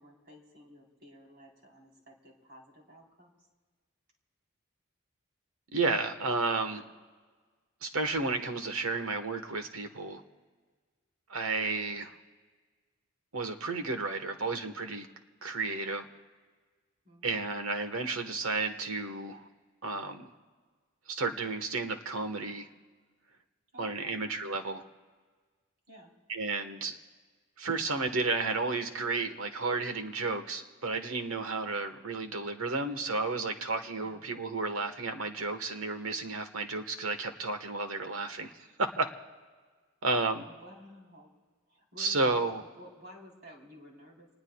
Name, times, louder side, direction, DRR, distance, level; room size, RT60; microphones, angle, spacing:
voice 1, 0.0-3.3 17.0-17.4 23.7-24.2 25.9-26.1 34.0-34.2 40.5-41.3 41.7-44.3, equal, 50° right, -1 dB, 3.8 m, -53 dB
voice 2, 5.7-6.8 7.8-10.2 11.3-12.1 13.3-15.1 15.4-16.1 17.2-19.4 19.8-20.3 21.1-22.7 23.8-24.8 26.3-26.9 27.6-39.1 40.0-40.5 42.0-42.6, right 3 dB, 85° right, 7 dB, 1.4 m, -32 dB
28.0 x 20.0 x 2.3 m, 1.4 s
head